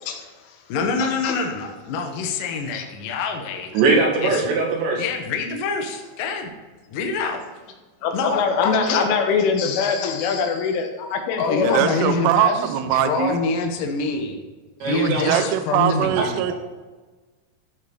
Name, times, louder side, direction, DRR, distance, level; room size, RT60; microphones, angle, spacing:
voice 1, 0.0-0.6 1.0-1.4 2.7-2.8 8.0-12.2 15.3-15.5, left 5 dB, 85° left, 4 dB, 3.8 m, -24 dB
voice 2, 0.7-3.7 4.2-4.4 5.0-6.5 6.9-7.4 8.1-9.1 11.4-14.4 14.8-16.5, left 4 dB, 70° left, 3 dB, 2.1 m, -26 dB
voice 3, 3.7-5.0 14.8-15.5 16.2-16.5, right 3 dB, 70° right, -1 dB, 4.1 m, -21 dB
voice 4, 11.6-13.4 14.8-16.5, right 11 dB, 90° right, 10 dB, 2.4 m, -22 dB
13.5 x 7.6 x 4.0 m, 1.3 s
omnidirectional pair, 5.5 m